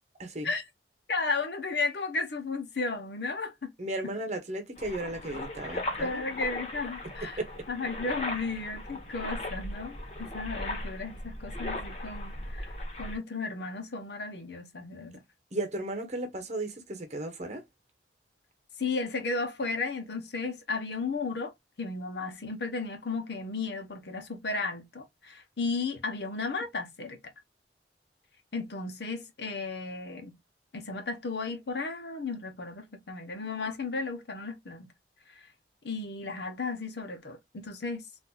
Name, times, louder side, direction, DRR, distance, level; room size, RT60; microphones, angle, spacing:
voice 1, 0.2-0.5 3.8-6.1 7.4-7.6 15.5-17.6, right 1 dB, 40° right, 1.0 m, -35 dB
voice 2, 1.1-3.7 5.7-7.4 7.7-15.2 18.8-21.5 21.8-27.2 28.5-30.4 30.7-34.9 35.8-38.0, left 3 dB, 70° left, 0.9 m, -34 dB
sound 1, 4.8-13.2, left 1 dB, 35° left, 1.0 m, -38 dB
4.1 x 2.6 x 2.3 m
head